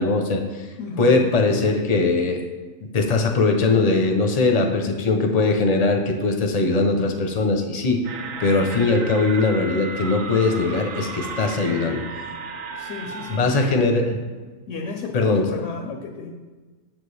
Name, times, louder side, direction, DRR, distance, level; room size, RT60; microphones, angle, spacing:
voice 1, 0.0-0.7 1.0-2.4 2.8-8.0 8.4-12.0 13.3-14.1 15.1-15.4, left 3 dB, 35° left, 3 dB, 0.7 m, -20 dB
voice 2, 0.8-1.8 12.7-14.0 14.7-16.3, left 4 dB, 70° left, 4 dB, 0.9 m, -33 dB
sound 1, 8.0-13.4, right 4 dB, 80° right, 1.1 m, -34 dB
7.4 x 7.4 x 3.3 m, 1.3 s
omnidirectional pair, 1.4 m